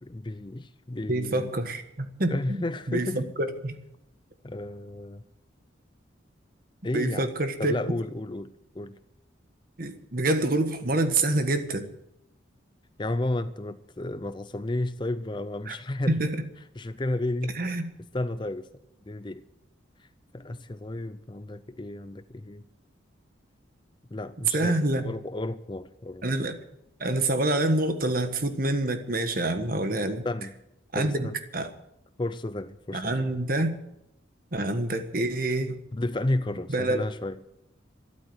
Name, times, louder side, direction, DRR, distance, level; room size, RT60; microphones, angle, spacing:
voice 1, 0.0-1.5 2.3-3.3 4.4-5.2 6.8-7.3 7.6-9.0 13.0-16.2 16.8-17.8 18.1-18.7 19.1-19.4 20.0-20.1 20.3-22.6 24.1-26.4 30.2-30.6 30.9-31.3 32.2-33.2 35.9-37.4, left 1 dB, 25° left, 0.5 m, -32 dB
voice 2, 1.1-2.6 2.9-3.8 6.9-7.8 9.8-11.9 15.7-15.8 16.1-16.3 17.5-17.8 24.5-25.1 26.2-26.5 27.0-30.3 30.9-31.7 32.9-33.7 34.5-35.8 36.7-37.0, right 2 dB, 45° right, 1.5 m, -27 dB
13.0 x 11.5 x 7.9 m
head